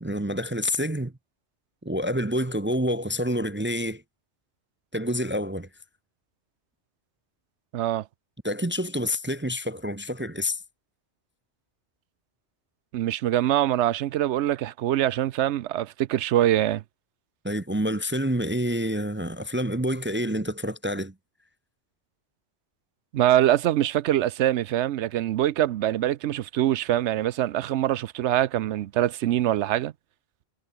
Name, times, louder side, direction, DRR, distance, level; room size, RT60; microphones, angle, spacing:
voice 1, 0.0-1.1 1.8-4.0 4.9-5.7 8.4-10.6 17.4-21.1, equal, 15° right, 0.5 m, -28 dB
voice 2, 7.7-8.1 12.9-16.8 23.1-29.9, right 12 dB, 85° right, 0.9 m, -24 dB
omnidirectional pair, 1.1 m